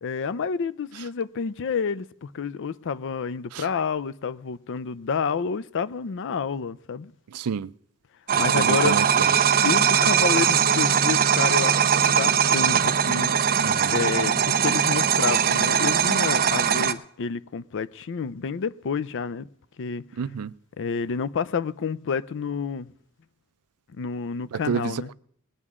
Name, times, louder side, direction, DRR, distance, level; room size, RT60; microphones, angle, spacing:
voice 1, 0.0-7.1 8.4-9.0 9.6-13.3 13.7-19.5 19.8-20.0 20.8-22.9 24.0-25.1, left 6 dB, 55° left, 0.5 m, -29 dB
voice 2, 7.3-7.7 8.5-9.3 13.6-14.0 20.2-20.5 24.5-24.9, right 6 dB, 90° right, 0.4 m, -29 dB
sound 1, 8.3-16.9, right 8 dB, 45° right, 0.6 m, -21 dB
20.0 x 9.7 x 3.7 m
head